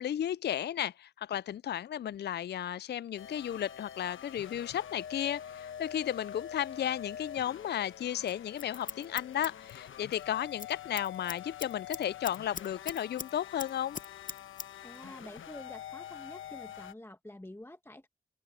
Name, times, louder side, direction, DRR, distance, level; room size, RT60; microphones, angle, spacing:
voice 1, 0.0-14.0, left 10 dB, 55° left, 0.4 m, -34 dB
sound 1, 3.2-16.9, left 9 dB, 80° left, 1.1 m, -46 dB
Scissors, 8.3-10.2 10.5-10.7 11.0-13.3 13.6-14.7 15.0-15.1, left 5 dB, 40° left, 0.8 m, -41 dB
voice 2, 14.8-18.1, left 1 dB, 10° left, 1.6 m, -48 dB
open air
supercardioid pair, 45°, 20 cm